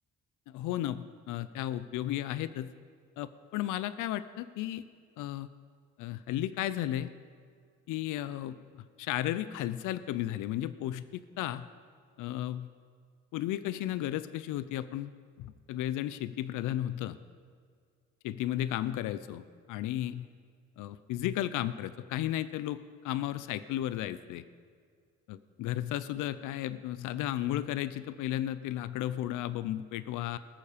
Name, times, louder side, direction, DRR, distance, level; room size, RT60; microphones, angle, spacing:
voice 1, 0.5-2.7 3.2-4.8 5.2-5.5 6.0-7.1 7.9-11.7 12.2-12.7 13.3-15.1 15.4-17.2 18.2-19.4 19.7-20.3 20.8-22.8 23.0-24.4 25.3-30.4, left 13 dB, 90° left, 15 dB, 0.5 m, -34 dB
19.5 x 7.1 x 5.0 m, 2.1 s
cardioid pair, 90°, 30 cm